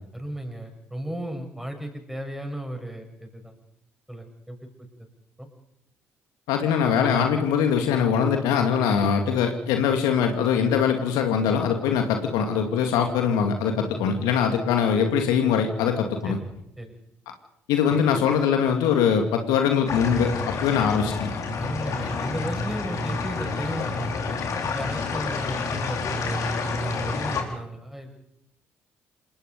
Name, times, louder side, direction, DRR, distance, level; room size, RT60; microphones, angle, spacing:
voice 1, 0.1-3.5 4.1-4.7 5.0-5.1 5.4-5.5 13.8-14.1 16.2-16.4 16.8-16.9 20.8-20.9 21.6-24.4 24.7-26.4 26.8-28.1, equal, 5° right, 4 dB, 7.1 m, -35 dB
voice 2, 6.5-16.4 17.7-21.3, left 7 dB, 65° left, 5 dB, 2.3 m, -22 dB
sound 1, 19.9-27.4, left 4 dB, 50° left, 4.2 m, -29 dB
28.0 x 17.5 x 5.4 m, 0.79 s
figure-of-eight pair, 45°, 7 cm